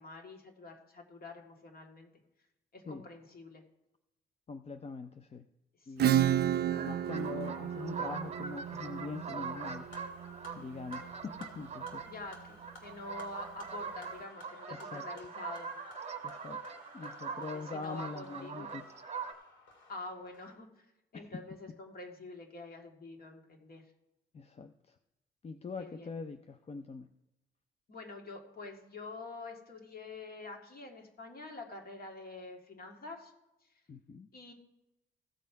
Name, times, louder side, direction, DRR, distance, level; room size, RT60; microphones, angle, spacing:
voice 1, 0.0-2.1 2.7-3.6 5.8-6.2 12.1-15.7 17.2-18.7 19.9-20.9 21.1-23.9 25.8-26.1 27.9-33.3 34.3-34.5, left 3 dB, 50° left, 2 dB, 1.9 m, -47 dB
voice 2, 4.5-5.5 5.9-6.3 6.6-9.9 10.5-12.1 14.7-15.3 16.2-16.6 16.9-18.9 21.1-21.4 24.3-25.0 25.4-27.1 33.9-34.3, left 4 dB, 30° left, 8 dB, 0.5 m, -43 dB
Acoustic guitar / Strum, 6.0-11.4, right 10 dB, 55° right, 0.4 m, -32 dB
sound 1, 6.7-19.3, right 5 dB, 35° right, 1.1 m, -43 dB
sound 2, 9.6-20.6, left 2 dB, 75° left, 2.1 m, -57 dB
15.5 x 5.4 x 4.6 m, 0.93 s
cardioid pair, 90°, 20 cm